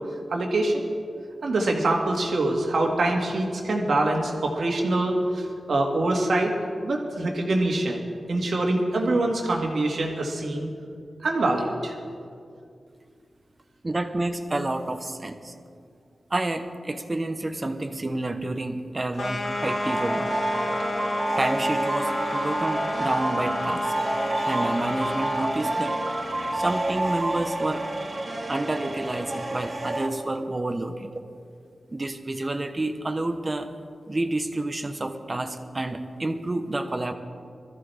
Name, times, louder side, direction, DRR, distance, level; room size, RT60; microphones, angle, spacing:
voice 1, 0.3-0.8 1.4-6.5 6.8-10.7 11.2-12.0, right 2 dB, 75° right, 0 dB, 2.1 m, -24 dB
voice 2, 13.8-15.5 16.3-20.3 21.0-23.9 24.5-26.1 26.5-27.8 28.5-31.1 31.9-33.7 34.1-37.1, right 2 dB, 30° right, 7 dB, 1.1 m, -29 dB
sound 1, 19.1-25.7, left 2 dB, 80° left, 1.6 m, -31 dB
sound 2, 19.4-30.1, right 1 dB, 45° right, 1.8 m, -28 dB
21.5 x 14.0 x 3.5 m, 2.3 s
wide cardioid pair, 75°, 0 cm